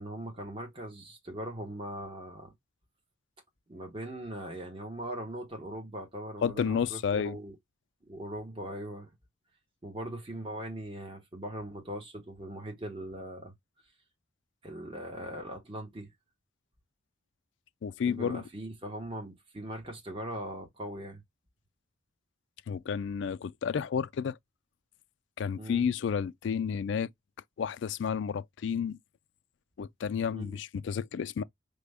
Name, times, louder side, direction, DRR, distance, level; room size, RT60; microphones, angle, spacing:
voice 1, 0.0-2.5 3.7-7.5 8.1-9.1 9.8-13.5 14.6-16.1 18.1-21.2 25.6-25.9 30.3-30.6, right 1 dB, 25° right, 1.0 m, -40 dB
voice 2, 6.4-7.4 17.8-18.4 22.7-24.4 25.4-27.1 27.6-29.0 29.8-31.4, left 7 dB, 65° left, 0.3 m, -31 dB
4.9 x 2.2 x 3.4 m
head